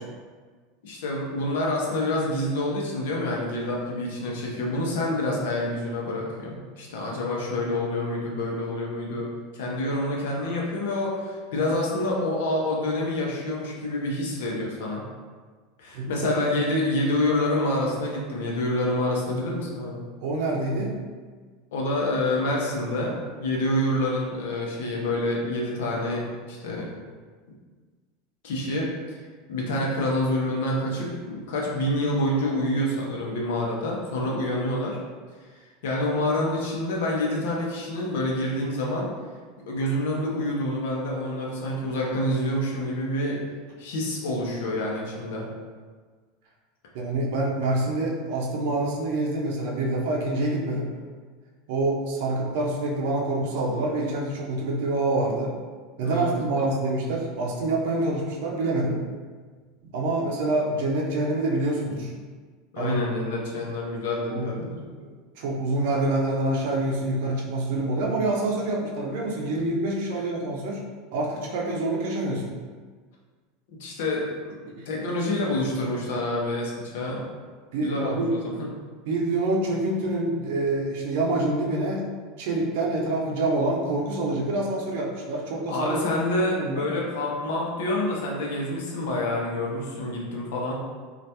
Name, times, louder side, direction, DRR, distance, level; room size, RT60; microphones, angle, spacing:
voice 1, 0.8-9.3 9.5-15.0 15.8-20.0 21.7-26.9 28.4-29.2 29.5-35.0 35.8-39.1 39.7-43.4 43.8-45.5 56.0-56.3 62.7-64.9 73.8-74.4 74.9-77.2 77.8-78.7 85.7-90.7, left 1 dB, 80° left, -2 dB, 0.7 m, -27 dB
voice 2, 15.9-16.4 20.2-20.9 46.9-50.9 51.7-55.5 56.0-59.0 59.9-62.1 62.8-63.0 64.3-64.5 65.0-65.1 65.4-70.8 71.1-72.5 74.7-74.9 77.7-78.4 79.1-82.1 82.4-86.0 86.5-86.9, right 2 dB, 65° right, -2 dB, 0.5 m, -26 dB
2.8 x 2.4 x 3.3 m, 1.5 s
supercardioid pair, 165°, 0 cm